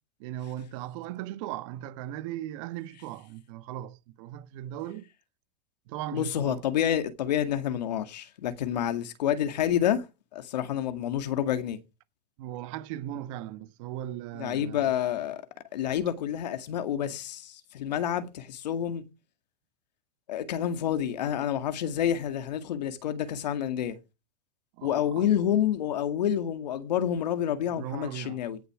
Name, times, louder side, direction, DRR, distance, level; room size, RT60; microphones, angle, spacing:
voice 1, 0.2-5.1 5.9-6.6 12.4-14.9 24.8-25.3 27.8-28.4, right 12 dB, 50° right, 1.3 m, -38 dB
voice 2, 6.1-10.0 10.3-11.8 14.3-15.4 15.7-19.0 20.3-24.0 24.8-28.6, left 10 dB, 80° left, 2.1 m, -28 dB
17.0 x 7.0 x 4.8 m
supercardioid pair, 150°, 21 cm